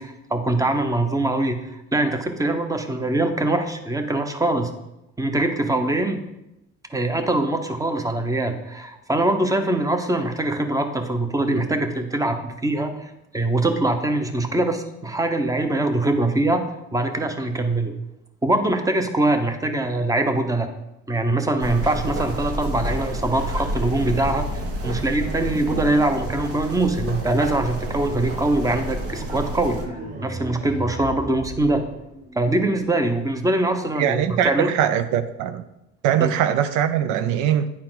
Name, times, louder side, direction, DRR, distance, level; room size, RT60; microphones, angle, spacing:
voice 1, 0.0-4.7 5.2-6.2 6.9-16.6 16.9-17.9 18.4-20.7 21.1-29.8 30.2-31.8 32.3-34.7 36.2-36.3, right 2 dB, 10° right, 0.9 m, -23 dB
sound 1, 21.6-29.9, right 1 dB, 50° right, 1.3 m, -29 dB
sound 2, 29.6-32.6, right 1 dB, 25° right, 1.4 m, -35 dB
voice 2, 34.0-35.7 36.0-37.7, right 10 dB, 75° right, 0.5 m, -21 dB
9.7 x 4.3 x 4.0 m
supercardioid pair, 85°, 30 cm